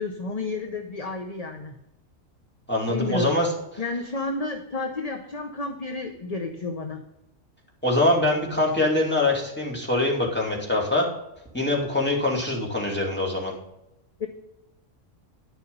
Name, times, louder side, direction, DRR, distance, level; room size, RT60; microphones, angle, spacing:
voice 1, 0.0-1.8 2.9-3.4 3.8-7.0 14.2-14.3, left 3 dB, 35° left, 4 dB, 0.9 m, -31 dB
voice 2, 2.7-3.5 7.8-11.1 11.5-13.5, left 2 dB, 10° left, -2 dB, 2.5 m, -23 dB
11.0 x 6.9 x 5.4 m, 0.88 s
omnidirectional pair, 1.4 m